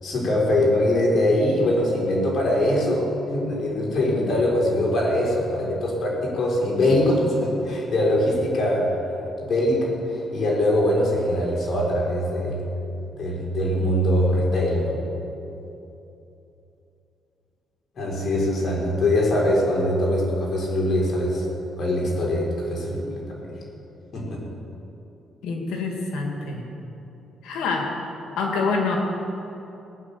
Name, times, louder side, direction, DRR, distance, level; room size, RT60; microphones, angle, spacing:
voice 1, 0.0-8.9 9.5-12.6 13.1-15.0 17.9-21.5 21.8-23.5 24.1-24.4, left 1 dB, 55° left, -2 dB, 4.5 m, -22 dB
voice 2, 25.4-26.6 27.4-27.9 28.4-29.0, left 4 dB, 85° left, 1 dB, 2.3 m, -26 dB
18.0 x 9.2 x 7.1 m, 2.9 s
cardioid pair, 90°, 0 cm